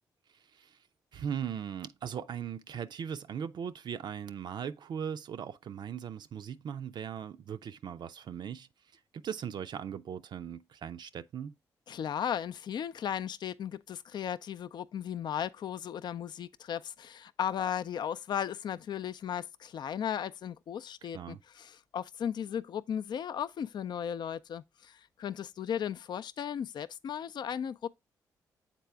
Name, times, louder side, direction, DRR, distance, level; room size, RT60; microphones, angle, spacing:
voice 1, 1.1-8.7 9.1-11.5 21.0-21.4, right 8 dB, 65° right, 0.4 m, -39 dB
voice 2, 11.9-27.9, left 9 dB, 60° left, 0.4 m, -36 dB
7.4 x 4.0 x 3.3 m
supercardioid pair, 50°, 8 cm